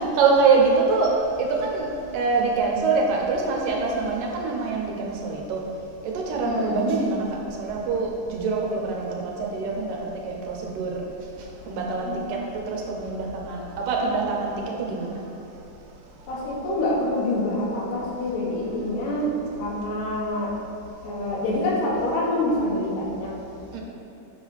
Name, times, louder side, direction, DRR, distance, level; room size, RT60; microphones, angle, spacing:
voice 1, 0.2-1.1 1.4-1.9 2.1-5.6 6.3-7.3 7.6-11.0 11.7-12.4 12.7-14.5 14.8-15.2 23.7-23.8, right 4 dB, 85° right, -1 dB, 2.6 m, -24 dB
voice 2, 6.5-6.9 12.0-12.2 16.3-19.3 19.6-20.5 21.0-23.3, left 1 dB, 80° left, -4 dB, 3.1 m, -26 dB
8.3 x 3.8 x 6.4 m, 2.7 s
omnidirectional pair, 3.7 m